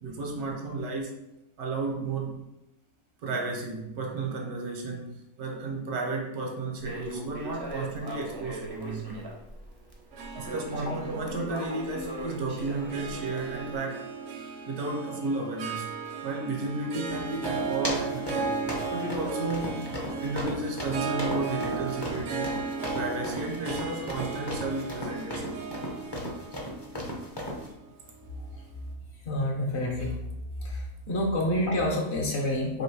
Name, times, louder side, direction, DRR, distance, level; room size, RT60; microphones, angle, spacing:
voice 1, 0.0-1.1 1.6-2.5 3.2-9.3 10.3-14.1 14.7-16.0 16.2-22.6 22.9-25.7, right 3 dB, 85° right, 1 dB, 1.3 m, -33 dB
Crackle, 6.8-13.8, right 1 dB, 35° right, 0.3 m, -39 dB
Harp, 10.1-28.6, right 4 dB, 65° right, 0.8 m, -36 dB
sound 1, 17.1-27.7, equal, 30° left, 0.5 m, -36 dB
voice 2, 29.3-30.1 30.6-32.8, left 1 dB, 55° left, 0 dB, 0.9 m, -28 dB
3.1 x 2.9 x 4.6 m, 0.87 s
omnidirectional pair, 1.6 m